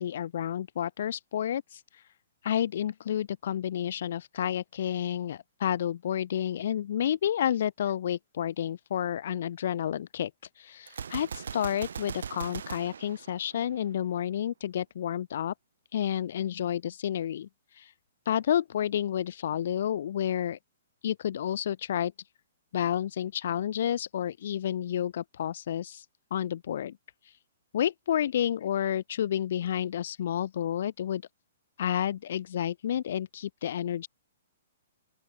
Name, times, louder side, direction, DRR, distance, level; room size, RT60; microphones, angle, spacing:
voice 1, 0.0-2.1 2.4-10.3 10.5-15.5 15.9-17.9 18.2-20.6 21.0-22.1 22.7-26.1 26.3-26.9 27.2-27.4 27.7-31.2 31.8-34.1, left 10 dB, 45° left, 2.8 m, -30 dB
Gunshot gunfire, 10.9-14.0, right 7 dB, 90° right, 5.3 m, -39 dB
open air
hypercardioid pair, 180°, 0 cm